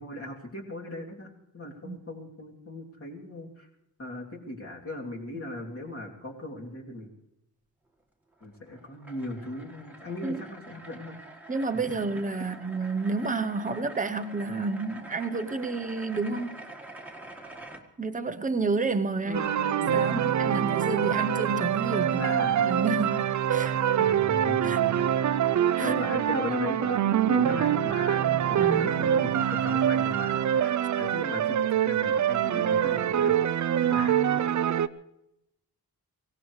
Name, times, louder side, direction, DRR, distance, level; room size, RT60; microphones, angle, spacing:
voice 1, 0.0-3.7 4.0-7.1 8.4-11.2 19.2-20.6 21.8-22.7 23.9-25.1 25.8-33.3 33.8-34.3, left 1 dB, 35° left, -2 dB, 2.9 m, -38 dB
sound 1, 8.3-17.8, right 2 dB, 5° right, 1.7 m, -46 dB
voice 2, 11.5-16.6 18.0-19.4 19.9-24.0 24.6-24.8 25.7-25.9 28.6-28.9, right 3 dB, 20° right, 8 dB, 0.8 m, -30 dB
sound 2, 19.3-34.9, right 10 dB, 50° right, 0.5 m, -25 dB
24.5 x 17.0 x 3.2 m, 0.85 s
wide cardioid pair, 150°, 38 cm